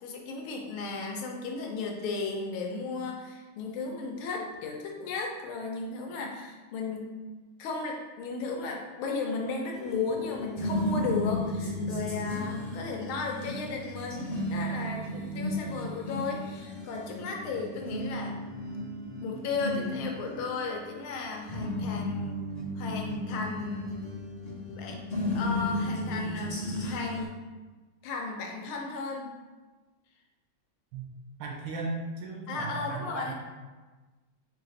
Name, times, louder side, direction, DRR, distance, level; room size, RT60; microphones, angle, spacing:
voice 1, 0.0-7.1 7.6-18.4 19.2-22.4 22.8-23.9 24.7-25.0 25.3-27.4 28.0-29.3 32.5-33.3, left 4 dB, 80° left, 1 dB, 1.5 m, -35 dB
sound 1, 9.7-27.3, left 1 dB, 45° left, 0.8 m, -34 dB
voice 2, 31.4-33.3, right 3 dB, 70° right, -1 dB, 1.2 m, -36 dB
4.5 x 2.4 x 3.8 m, 1.3 s
omnidirectional pair, 2.3 m